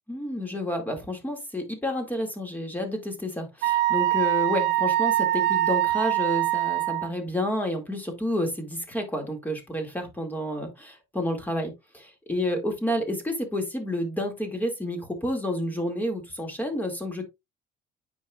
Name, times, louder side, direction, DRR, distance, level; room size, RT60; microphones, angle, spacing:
voice 1, 0.1-17.3, left 1 dB, 10° left, 2.1 m, -30 dB
Wind instrument woodwind instrument, 3.6-7.1, right 15 dB, 85° right, 0.7 m, -23 dB
9.1 x 5.3 x 2.3 m
cardioid pair, 110°, 17 cm